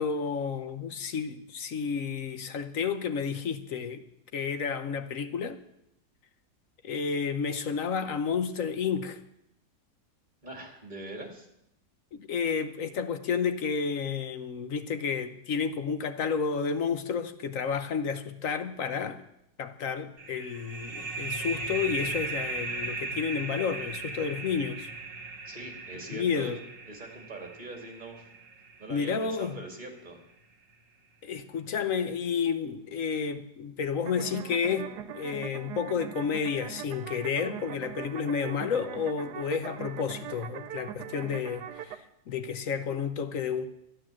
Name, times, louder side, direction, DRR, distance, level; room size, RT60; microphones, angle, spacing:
voice 1, 0.0-4.0 4.3-5.6 6.8-9.2 12.1-19.2 19.6-24.9 26.1-26.6 28.9-29.6 31.2-42.0 42.3-43.7, left 6 dB, 60° left, 1.1 m, -31 dB
voice 2, 10.4-11.5 25.5-26.5 26.9-28.2 28.8-30.2, right 2 dB, 25° right, 2.4 m, -42 dB
sound 1, 20.2-29.5, right 3 dB, 55° right, 1.9 m, -37 dB
sound 2, 34.0-42.0, right 9 dB, 80° right, 1.3 m, -41 dB
12.0 x 10.0 x 7.4 m
omnidirectional pair, 1.8 m